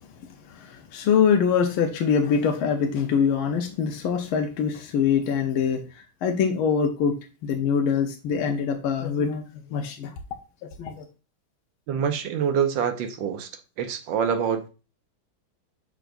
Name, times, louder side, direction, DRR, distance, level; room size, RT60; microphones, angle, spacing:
voice 1, 0.4-7.2 7.4-10.1 10.6-11.0, left 6 dB, 90° left, 4 dB, 1.7 m, -24 dB
voice 2, 11.9-13.5 13.8-14.7, right 7 dB, 70° right, 8 dB, 1.4 m, -25 dB
6.8 x 6.1 x 2.5 m, 0.32 s
omnidirectional pair, 2.2 m